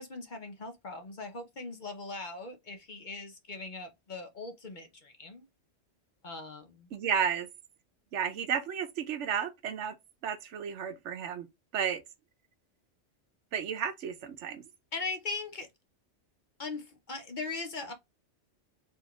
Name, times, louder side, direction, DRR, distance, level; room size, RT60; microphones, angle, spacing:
voice 1, 0.0-5.5 6.2-6.9 14.9-15.7 16.6-17.9, left 3 dB, 45° left, 0.8 m, -40 dB
voice 2, 6.9-7.5 8.1-10.0 10.2-11.5 11.7-12.0 13.5-14.6, right 8 dB, 75° right, 1.0 m, -32 dB
4.7 x 2.7 x 3.0 m
omnidirectional pair, 1.3 m